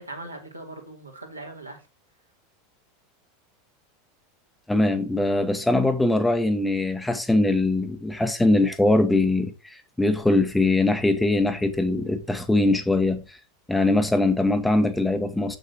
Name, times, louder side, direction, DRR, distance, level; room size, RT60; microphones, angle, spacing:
voice 1, 0.0-1.8 14.7-14.9, right 2 dB, 85° right, 2.5 m, -40 dB
voice 2, 4.7-9.5 10.0-13.2 13.7-15.6, left 2 dB, 5° left, 1.2 m, -22 dB
8.1 x 6.5 x 4.4 m
figure-of-eight pair, 80°, 0 cm